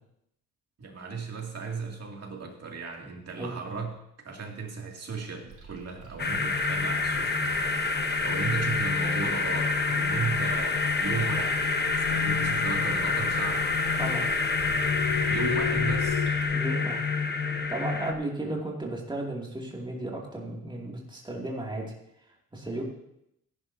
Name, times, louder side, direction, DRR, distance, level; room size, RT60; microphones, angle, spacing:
voice 1, 0.8-3.9 4.2-7.4 8.2-11.7 12.1-13.7 15.3-16.3, right 5 dB, 50° right, 0 dB, 2.5 m, -35 dB
sound 1, 5.5-16.5, right 3 dB, 70° right, 5.4 m, -48 dB
sound 2, 6.2-18.1, left 4 dB, 30° left, 1.0 m, -27 dB
sound 3, 11.3-16.3, left 10 dB, 75° left, 0.6 m, -35 dB
voice 2, 16.5-17.0 17.7-21.9 22.3-22.8, right 2 dB, 15° right, -2 dB, 2.5 m, -34 dB
16.0 x 10.5 x 2.8 m, 0.79 s
cardioid pair, 90°, 33 cm